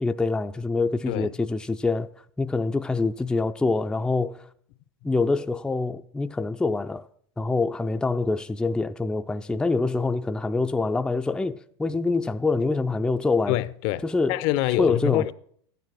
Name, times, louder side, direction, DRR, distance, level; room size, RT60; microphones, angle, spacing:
voice 1, 0.0-2.1 2.4-4.5 5.0-7.1 7.4-13.6 14.0-14.4 14.8-15.3, left 3 dB, 5° left, 0.4 m, -25 dB
voice 2, 13.5-15.3, left 15 dB, 55° left, 0.6 m, -25 dB
12.5 x 9.3 x 6.1 m
hypercardioid pair, 115°, 14 cm